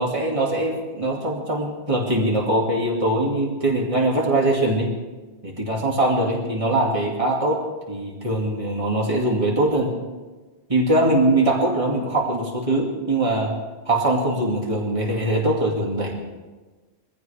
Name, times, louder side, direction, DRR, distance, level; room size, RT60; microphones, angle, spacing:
voice 1, 0.0-4.9 5.4-7.6 7.9-9.9 10.7-13.5 13.9-16.1, right 1 dB, 30° right, -2 dB, 2.4 m, -22 dB
23.0 x 15.5 x 3.5 m, 1.3 s
omnidirectional pair, 1.1 m